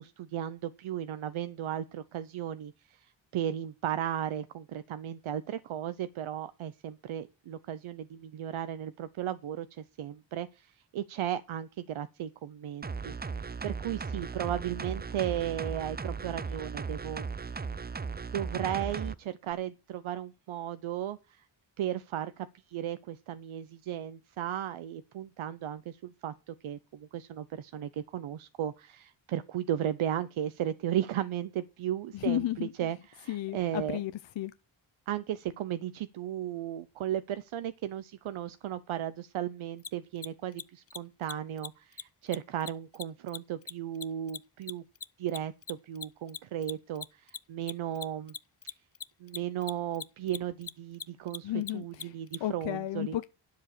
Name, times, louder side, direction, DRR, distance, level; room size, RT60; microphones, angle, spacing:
voice 1, 0.0-17.7 18.3-21.5 21.8-34.0 35.1-44.8 45.2-48.3 49.2-53.2, right 11 dB, 90° right, 0.8 m, -35 dB
sound 1, 12.8-19.2 19.5-19.6, right 5 dB, 20° right, 0.5 m, -37 dB
voice 2, 32.1-32.7 33.3-34.5 51.4-52.1 52.4-53.2, left 13 dB, 70° left, 0.7 m, -33 dB
Mechanisms, 39.8-39.9 40.2-40.3 40.5-40.6 40.9-41.0 41.2-41.3 41.6-41.7 41.9-42.0 42.3-45.0 45.3-52.4, left 7 dB, 30° left, 0.6 m, -40 dB
10.5 x 7.2 x 6.5 m
cardioid pair, 85°, 47 cm